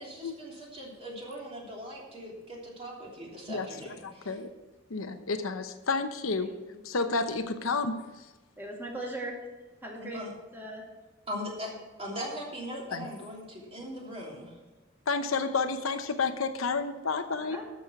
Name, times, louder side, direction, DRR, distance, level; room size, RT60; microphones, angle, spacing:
voice 1, 0.0-4.4 10.0-10.3 11.3-11.7 12.0-14.5, equal, 30° right, -3 dB, 3.3 m, -40 dB
voice 2, 4.0-4.5 4.9-6.5 6.8-8.1 12.9-13.1 15.1-17.6, left 4 dB, 80° left, 8 dB, 0.9 m, -30 dB
voice 3, 6.4-6.9 8.6-9.4 9.8-10.2 10.5-10.8 17.5-17.6, right 1 dB, 10° right, -2 dB, 2.4 m, -39 dB
13.5 x 6.4 x 5.9 m, 1.2 s
head